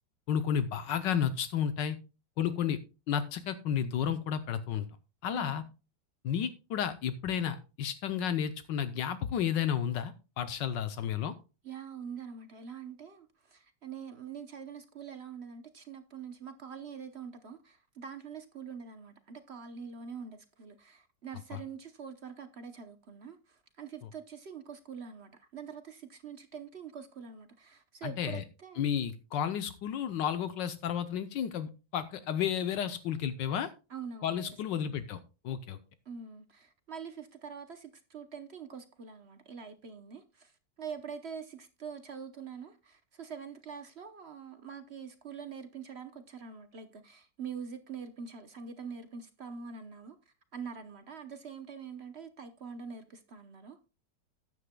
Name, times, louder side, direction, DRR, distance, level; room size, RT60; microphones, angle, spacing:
voice 1, 0.3-2.0 2.4-2.8 3.1-4.9 5.2-5.6 6.2-11.3 21.5-21.6 28.0-28.4 28.8-33.7 34.2-35.8, left 8 dB, 80° left, 1.4 m, -32 dB
voice 2, 5.3-5.7 11.6-28.9 33.9-34.8 36.1-40.5 40.8-53.8, right 6 dB, 50° right, 0.8 m, -45 dB
14.0 x 9.9 x 2.2 m
omnidirectional pair, 2.0 m